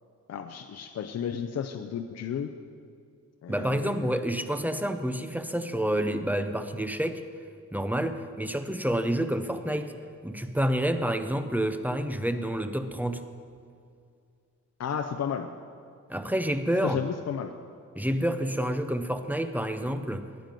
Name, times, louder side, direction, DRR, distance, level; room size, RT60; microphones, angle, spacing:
voice 1, 0.3-2.5 3.4-4.2 14.8-15.5 16.8-17.5, left 7 dB, 55° left, 5 dB, 0.6 m, -33 dB
voice 2, 3.5-7.2 7.7-9.9 10.2-13.2 16.1-17.0 18.0-20.3, equal, 5° right, 9 dB, 0.5 m, -28 dB
19.0 x 9.2 x 5.2 m, 2.4 s
wide cardioid pair, 175°, 32 cm